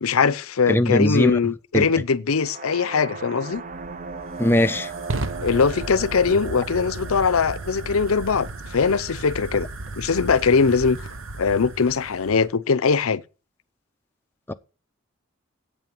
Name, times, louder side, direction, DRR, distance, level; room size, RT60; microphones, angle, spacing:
voice 1, 0.0-3.6 5.4-9.7 10.0-11.0 11.4-13.2, left 5 dB, 90° left, 0.7 m, -21 dB
voice 2, 0.7-1.4 1.7-1.8 4.4-4.9 14.5-14.6, left 1 dB, 10° left, 0.5 m, -20 dB
sound 1, 2.3-10.2, right 4 dB, 35° right, 0.8 m, -39 dB
Fire, 3.5-12.5, right 2 dB, 70° right, 1.0 m, -35 dB
9.0 x 8.7 x 7.6 m
head